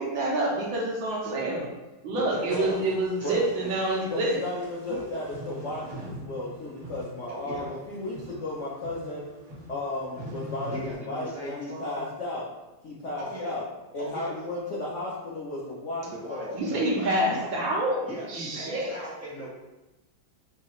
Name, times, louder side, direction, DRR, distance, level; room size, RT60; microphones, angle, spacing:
voice 1, 0.0-1.6 2.0-4.4 16.5-18.0 18.3-18.9, right 1 dB, 75° right, -2 dB, 1.5 m, -27 dB
voice 2, 2.1-2.8 3.2-4.1 4.9-5.0 7.3-7.7 10.7-12.1 13.2-13.6 14.0-14.3 16.1-17.5 18.0-19.5, right 1 dB, 10° left, -10 dB, 1.0 m, -39 dB
sound 1, 2.3-10.9, right 1 dB, 45° right, 1.1 m, -43 dB
voice 3, 4.0-9.2 9.7-12.5 12.8-13.6 13.9-16.6, left 2 dB, 90° left, -6 dB, 0.6 m, -34 dB
5.7 x 2.4 x 3.0 m, 1.0 s
omnidirectional pair, 2.2 m